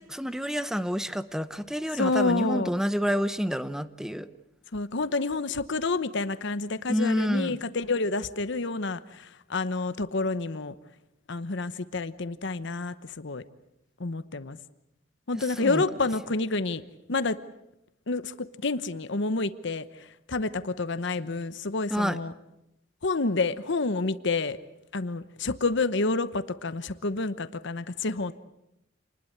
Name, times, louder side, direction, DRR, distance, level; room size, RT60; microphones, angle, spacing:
voice 1, 0.0-4.3 6.9-7.6 15.3-15.9 21.9-22.2, equal, 5° right, 12 dB, 0.9 m, -28 dB
voice 2, 1.9-2.7 4.7-10.7 11.3-13.4 14.0-14.6 15.3-16.8 17.1-17.4 18.1-19.8 20.3-22.3 23.0-24.6 24.9-28.3, left 3 dB, 65° left, 13 dB, 1.0 m, -29 dB
28.0 x 20.5 x 8.0 m, 0.85 s
head